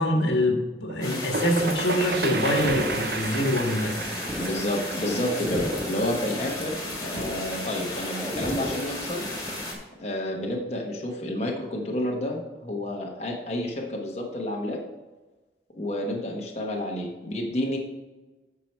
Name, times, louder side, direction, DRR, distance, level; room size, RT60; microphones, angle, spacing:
voice 1, 0.0-4.0, left 1 dB, 80° left, 2 dB, 1.6 m, -25 dB
sound 1, 0.9-6.5, right 4 dB, 60° right, 0.6 m, -32 dB
sound 2, 1.0-9.7, left 2 dB, 20° left, 2.1 m, -35 dB
sound 3, 1.6-9.8, equal, 15° right, 0.6 m, -37 dB
voice 2, 4.4-9.3 10.0-14.8 15.7-17.8, left 1 dB, 35° left, -1 dB, 1.2 m, -30 dB
9.0 x 6.0 x 4.4 m, 1.2 s
head